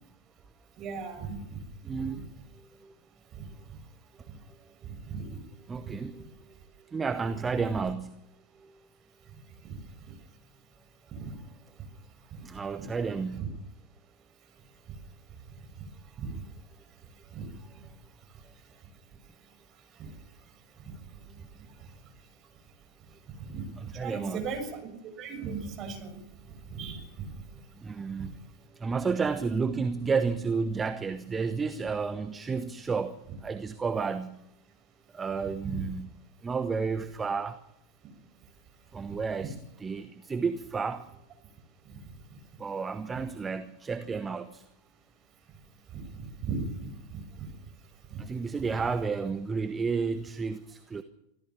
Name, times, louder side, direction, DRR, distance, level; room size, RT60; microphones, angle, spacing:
voice 1, 0.8-1.6 4.8-5.4 5.8-5.9 7.7-7.8 11.1-11.3 16.2-16.3 17.3-17.5 20.0-20.1 23.4-23.6 24.0-24.9 25.2-26.2 26.7-27.3 35.6-35.8 39.1-39.2 45.9-46.9 47.4-47.5 48.1-48.2, right 5 dB, 30° right, 6.7 m, -37 dB
voice 2, 1.8-2.3 2.5-2.9 5.2-5.3 5.6-6.4 6.9-8.2 8.6-8.7 12.4-13.5 23.8-24.4 27.8-28.4 28.7-34.4 35.1-36.1 36.4-37.6 38.9-41.1 42.6-44.6 48.2-51.0, right 5 dB, 15° right, 1.0 m, -31 dB
25.5 x 14.5 x 7.2 m
figure-of-eight pair, 90°, 0 cm